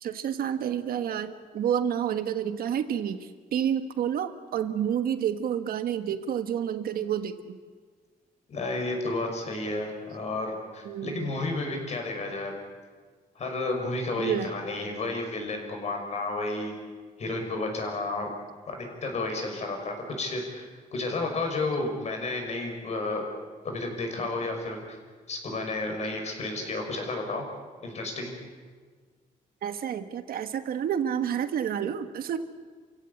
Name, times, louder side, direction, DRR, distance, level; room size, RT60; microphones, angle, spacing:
voice 1, 0.0-7.6 10.8-11.3 14.2-14.5 29.6-32.4, right 9 dB, 75° right, 9 dB, 1.4 m, -29 dB
voice 2, 8.5-12.5 13.4-16.7 17.2-18.3 18.7-23.3 23.6-25.0 25.3-27.5 27.8-28.3, left 2 dB, 45° left, 3 dB, 5.8 m, -32 dB
29.5 x 16.0 x 8.4 m, 1.5 s
cardioid pair, 140°, 15 cm